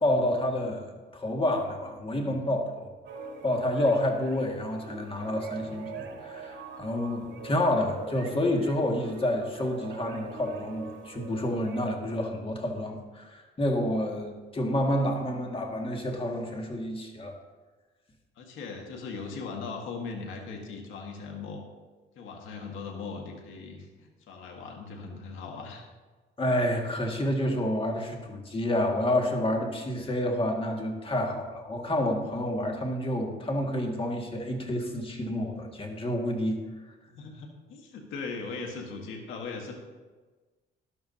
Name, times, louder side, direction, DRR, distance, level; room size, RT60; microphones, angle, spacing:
voice 1, 0.0-2.9 3.4-17.4 26.4-36.6, left 1 dB, 25° left, 2 dB, 2.0 m, -29 dB
voice 2, 2.1-2.4 18.4-21.7 22.2-25.8 37.1-39.7, left 4 dB, 85° left, 2 dB, 1.8 m, -39 dB
sound 1, 3.0-12.0, right 3 dB, 65° right, 1.7 m, -42 dB
13.0 x 11.5 x 2.8 m, 1.3 s
cardioid pair, 90°, 20 cm